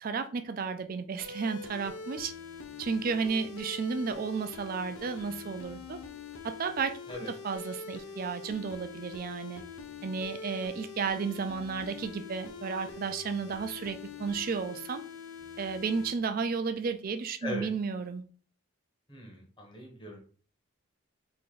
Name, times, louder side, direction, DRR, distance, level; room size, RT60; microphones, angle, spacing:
voice 1, 0.0-2.3 2.8-6.0 6.4-6.9 7.4-9.6 10.0-15.0 15.6-18.2, right 5 dB, 45° right, 0.3 m, -33 dB
sound 1, 1.2-16.1, left 5 dB, 80° left, 0.5 m, -44 dB
voice 2, 19.1-20.2, left 1 dB, 25° left, 0.9 m, -40 dB
3.1 x 2.5 x 3.7 m
head